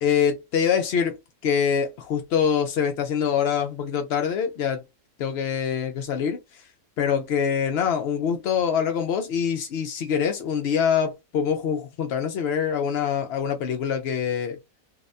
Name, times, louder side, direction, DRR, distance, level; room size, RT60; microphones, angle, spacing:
voice 1, 0.0-4.8 5.2-6.6 7.0-14.6, left 7 dB, 70° left, 0.6 m, -25 dB
2.7 x 2.1 x 2.4 m
omnidirectional pair, 1.6 m